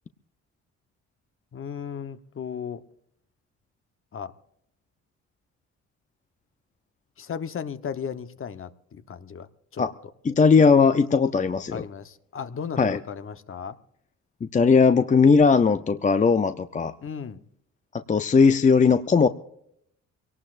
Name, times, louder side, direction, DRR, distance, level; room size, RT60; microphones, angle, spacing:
voice 1, 1.5-2.8 4.1-4.3 7.2-9.8 11.7-13.8 17.0-17.4, left 7 dB, 45° left, 11 dB, 1.1 m, -35 dB
voice 2, 10.3-11.8 12.8-13.0 14.4-16.9 17.9-19.3, left 5 dB, 25° left, 10 dB, 0.6 m, -18 dB
23.5 x 18.5 x 2.5 m, 0.70 s
cardioid pair, 90°, 30 cm